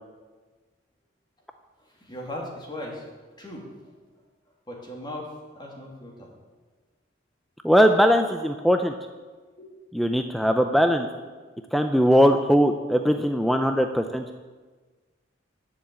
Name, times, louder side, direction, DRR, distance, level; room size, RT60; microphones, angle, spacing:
voice 1, 1.8-3.9 4.7-6.3 9.6-9.7, left 1 dB, 25° left, -1 dB, 2.3 m, -38 dB
voice 2, 7.6-8.9 9.9-11.1 11.7-14.2, equal, ahead, 6 dB, 0.4 m, -20 dB
10.5 x 7.1 x 8.1 m, 1.3 s
head